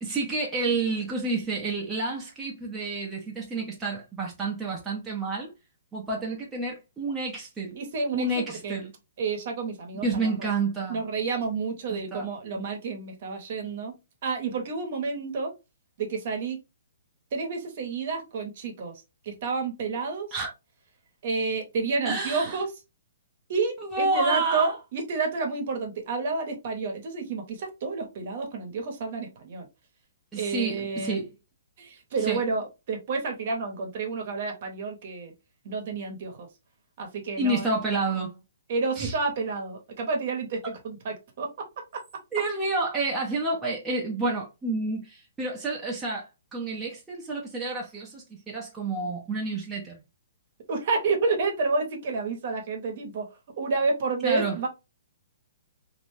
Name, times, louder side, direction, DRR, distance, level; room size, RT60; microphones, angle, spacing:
voice 1, 0.0-5.5 5.9-7.8 8.1-8.9 10.0-11.0 11.9-12.3 20.3-20.5 22.1-22.6 23.8-24.7 30.3-31.3 32.2-32.4 37.4-38.3 39.0-39.1 42.3-50.0 54.2-54.6, right 3 dB, 10° right, 0.6 m, -29 dB
voice 2, 7.8-8.8 9.2-10.5 10.9-13.9 14.2-15.5 16.0-16.6 17.3-18.9 19.2-20.3 21.2-22.7 23.5-29.7 30.4-31.2 31.8-35.3 35.6-36.5 37.0-37.7 38.7-41.5 50.7-53.2 53.6-54.7, right 4 dB, 45° right, 0.8 m, -30 dB
2.5 x 2.1 x 3.1 m
hypercardioid pair, 165°, 0 cm